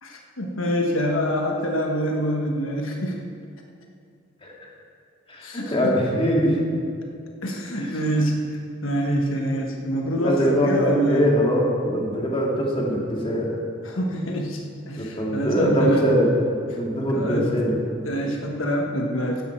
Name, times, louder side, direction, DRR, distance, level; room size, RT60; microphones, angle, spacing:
voice 1, 0.0-3.2 5.4-5.9 7.4-11.3 13.8-16.1 17.1-17.5 18.0-19.4, equal, 85° left, 1 dB, 1.3 m, -25 dB
voice 2, 5.3-6.6 7.8-8.0 10.2-13.6 15.0-16.3 16.7-17.8, equal, 30° left, -2 dB, 2.2 m, -22 dB
15.0 x 11.0 x 4.5 m, 2.4 s
head